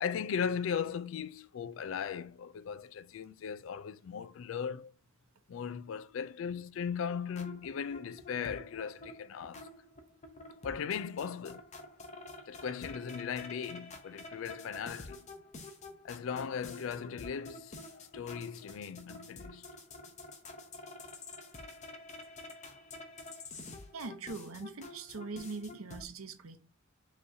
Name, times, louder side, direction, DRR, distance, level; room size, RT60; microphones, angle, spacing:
voice 1, 0.0-4.9 5.5-9.7 10.6-11.6 12.5-15.3 16.0-19.7, left 7 dB, 65° left, 0.3 m, -38 dB
sound 1, 7.1-26.0, left 2 dB, 35° left, 0.6 m, -49 dB
voice 2, 23.9-26.6, right 4 dB, 85° right, 0.7 m, -42 dB
5.4 x 3.0 x 2.6 m
head